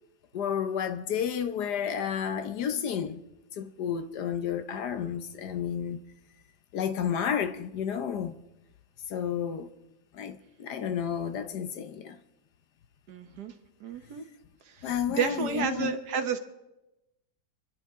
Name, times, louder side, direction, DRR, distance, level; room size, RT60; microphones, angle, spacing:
voice 1, 0.3-3.2 3.5-6.0 6.7-8.4 9.1-9.7 10.1-12.2 14.8-15.9, left 8 dB, 65° left, 1.2 m, -31 dB
voice 2, 13.1-13.5 13.8-14.2 14.6-16.4, right 6 dB, 65° right, 1.6 m, -31 dB
27.5 x 10.5 x 3.6 m
omnidirectional pair, 2.0 m